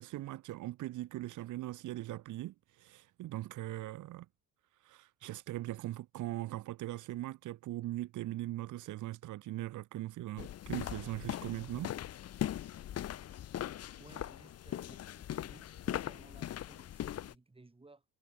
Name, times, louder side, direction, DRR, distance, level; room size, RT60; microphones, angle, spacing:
voice 1, 0.0-4.3 4.8-11.9, right 15 dB, 80° right, 1.1 m, -40 dB
sound 1, 10.4-17.3, left 11 dB, 55° left, 0.8 m, -40 dB
voice 2, 14.0-18.0, right 2 dB, 20° right, 6.5 m, -59 dB
cardioid pair, 90°, 30 cm